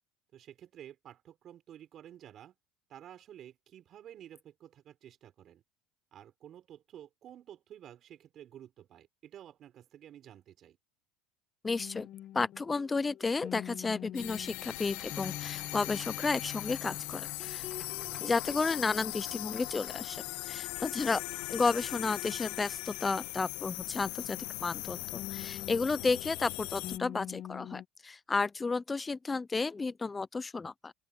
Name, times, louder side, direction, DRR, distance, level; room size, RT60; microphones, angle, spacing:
voice 1, 0.3-2.5 2.9-5.6 6.1-10.8 18.0-18.3, right 11 dB, 35° right, 6.4 m, -52 dB
voice 2, 11.6-12.1 12.3-17.6 18.2-21.2 21.5-30.9, left 4 dB, 15° left, 0.5 m, -32 dB
sound 1, 11.8-20.3 20.5-24.0 25.2-27.8, left 12 dB, 45° left, 1.9 m, -47 dB
sound 2, 14.1-27.0, left 27 dB, 70° left, 0.3 m, -40 dB
Clapping / Cheering / Applause, 14.3-20.6, right 2 dB, 10° right, 1.8 m, -56 dB
open air
cardioid pair, 155°, 0 cm